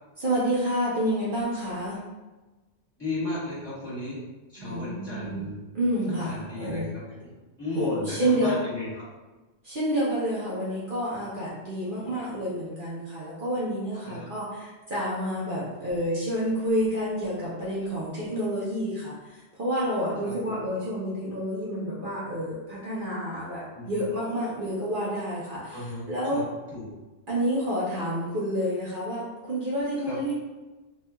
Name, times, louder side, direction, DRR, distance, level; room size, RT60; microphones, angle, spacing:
voice 1, 0.2-2.0 4.6-5.5 5.7-6.9 7.7-8.5 9.6-26.4 27.3-30.3, equal, 55° right, -8 dB, 0.8 m, -29 dB
voice 2, 3.0-4.2 4.5-5.6 6.2-6.8 7.6-9.0 14.0-14.2 20.2-20.6 23.7-24.0 25.7-26.0 26.3-26.4 26.7-26.9 30.1-30.2, left 2 dB, 20° left, -11 dB, 1.4 m, -34 dB
3.2 x 2.8 x 2.2 m, 1.2 s
omnidirectional pair, 1.2 m